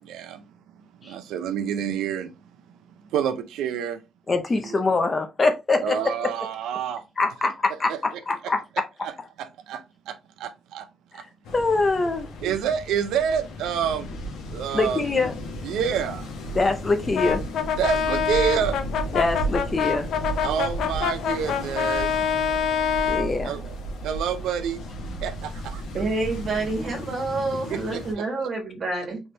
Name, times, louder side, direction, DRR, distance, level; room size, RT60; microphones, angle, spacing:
voice 1, 0.0-4.0 4.7-4.8 5.8-7.1 9.0-9.1 9.4-10.9 11.1-11.2 12.4-14.1 14.5-15.2 15.6-16.3 17.8-18.8 20.4-22.1 23.4-23.6 24.0-24.8 25.2-25.8 27.7-28.3, right 8 dB, 85° right, 0.5 m, -28 dB
voice 2, 4.3-6.3 7.2-8.6 11.1-11.3 11.5-12.3 14.7-15.3 16.5-17.4 19.1-20.1 23.0-23.5, left 3 dB, 20° left, 0.5 m, -24 dB
sound 1, 11.4-28.1, right 1 dB, 85° left, 1.2 m, -34 dB
Brass instrument, 17.1-23.3, left 8 dB, 60° left, 0.6 m, -26 dB
voice 3, 25.9-29.2, right 3 dB, 30° right, 1.7 m, -28 dB
4.2 x 3.4 x 3.3 m
cardioid pair, 180°, 0 cm